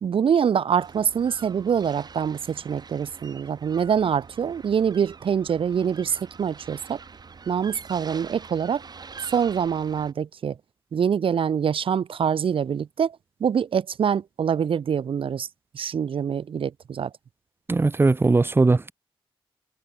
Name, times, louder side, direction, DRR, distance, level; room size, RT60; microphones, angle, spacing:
voice 1, 0.0-7.0 7.5-8.8 9.2-10.6 10.9-15.5 15.7-17.1, right 7 dB, 75° right, 0.9 m, -25 dB
sound 1, 0.8-10.1, right 5 dB, 50° right, 2.4 m, -44 dB
voice 2, 17.7-18.9, right 3 dB, 25° right, 0.7 m, -19 dB
wide cardioid pair, 130°, 9 cm